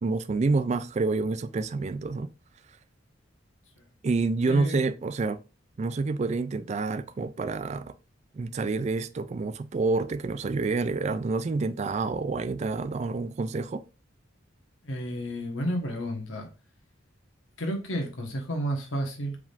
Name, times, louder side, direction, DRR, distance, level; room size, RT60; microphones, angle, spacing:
voice 1, 0.0-2.3 4.0-5.4 5.8-7.9 8.3-13.8, right 3 dB, 35° right, 0.3 m, -28 dB
voice 2, 4.5-4.8 14.8-16.5 17.6-19.4, equal, 85° left, 1.3 m, -31 dB
4.8 x 3.6 x 2.5 m
head